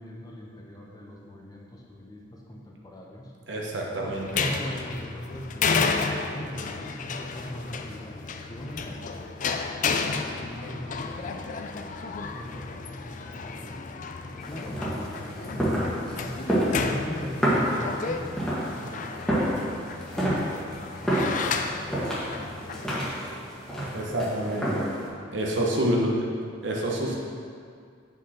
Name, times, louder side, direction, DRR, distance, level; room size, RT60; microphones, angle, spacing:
voice 1, 0.0-3.3 4.0-9.3 9.8-13.8 14.2-19.8 20.3-23.3 24.1-24.6 25.2-26.2 27.0-27.1, equal, 20° left, -2 dB, 0.8 m, -41 dB
voice 2, 3.5-4.4 23.9-24.9 25.3-26.1 26.6-27.1, right 1 dB, 65° right, -2 dB, 1.2 m, -27 dB
sound 1, 4.1-22.9, left 4 dB, 40° left, 0.4 m, -32 dB
sound 2, 14.4-25.1, right 1 dB, ahead, 1.4 m, -29 dB
8.1 x 5.3 x 4.3 m, 2.2 s
head